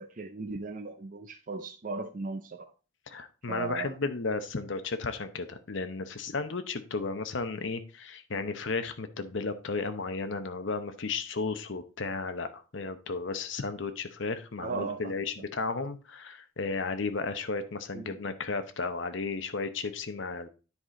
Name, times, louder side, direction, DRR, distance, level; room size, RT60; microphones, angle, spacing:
voice 1, 0.0-2.7 3.5-4.0 14.6-15.1 17.9-18.2, right 3 dB, 40° right, 0.5 m, -37 dB
voice 2, 3.1-20.5, left 4 dB, 60° left, 0.8 m, -34 dB
10.0 x 4.9 x 3.7 m
head